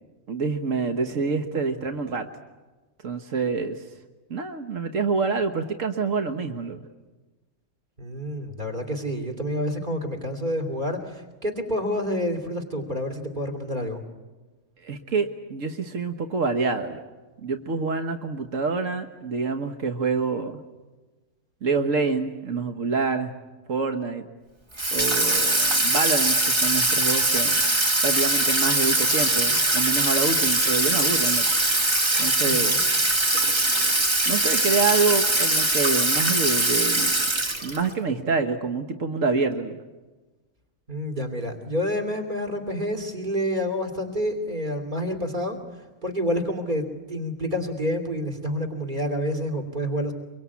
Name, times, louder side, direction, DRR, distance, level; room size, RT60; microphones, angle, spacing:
voice 1, 0.3-2.3 3.0-3.8 4.3-6.8 14.8-17.0 17.4-20.6 21.6-23.3 23.7-24.3 24.9-27.7 28.0-31.4 32.2-32.8 34.2-37.1 37.6-39.8, right 4 dB, 85° right, 6 dB, 1.7 m, -27 dB
voice 2, 8.0-14.0 32.4-32.8 40.9-50.1, equal, 40° right, 6 dB, 3.0 m, -28 dB
Water tap faucet / Sink (filling or washing), 24.8-37.9, right 2 dB, 20° right, 1.5 m, -22 dB
25.0 x 23.5 x 8.4 m, 1.2 s
omnidirectional pair, 1.3 m